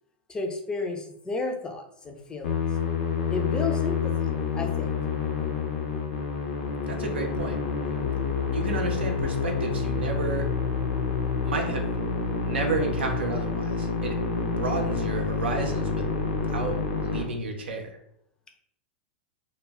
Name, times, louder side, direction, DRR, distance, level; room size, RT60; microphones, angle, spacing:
voice 1, 0.3-2.6 3.3-4.9, left 3 dB, 15° left, 3 dB, 0.4 m, -32 dB
Musical instrument, 2.4-17.2, left 5 dB, 70° left, 0.5 m, -28 dB
voice 2, 6.9-7.6 8.5-10.5 11.4-12.0 12.4-14.2 14.6-16.1 16.5-16.8 17.0-18.0, right 3 dB, 85° right, 3 dB, 0.6 m, -31 dB
2.2 x 2.0 x 3.4 m, 0.74 s
hypercardioid pair, 110°, 6 cm